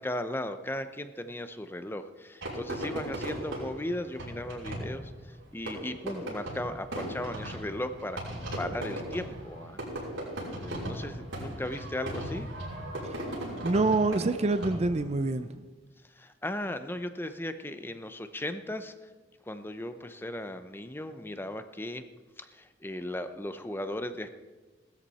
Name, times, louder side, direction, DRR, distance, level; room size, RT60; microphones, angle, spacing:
voice 1, 0.0-9.8 10.6-12.5 16.1-18.9 19.5-22.0 22.4-24.3, left 1 dB, 10° left, 9 dB, 0.6 m, -37 dB
Fireworks, 2.4-15.1, right 1 dB, 85° right, 6.3 m, -37 dB
voice 2, 13.6-15.6, right 2 dB, 35° right, 11 dB, 0.5 m, -26 dB
19.0 x 13.0 x 4.2 m, 1.3 s
head